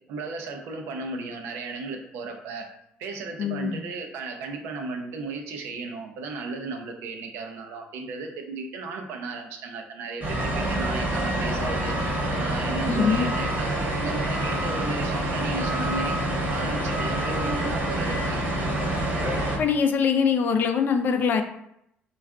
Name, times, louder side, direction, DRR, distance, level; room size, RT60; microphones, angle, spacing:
voice 1, 0.1-2.7 3.0-11.9 12.4-18.4, right 3 dB, 80° right, 3 dB, 0.5 m, -35 dB
voice 2, 3.4-3.8 12.9-13.3 19.6-21.4, left 6 dB, 55° left, 6 dB, 0.4 m, -23 dB
sound 1, 10.2-19.6, right 1 dB, 45° right, 0.9 m, -27 dB
3.3 x 2.3 x 2.3 m, 0.77 s
supercardioid pair, 70°, 4 cm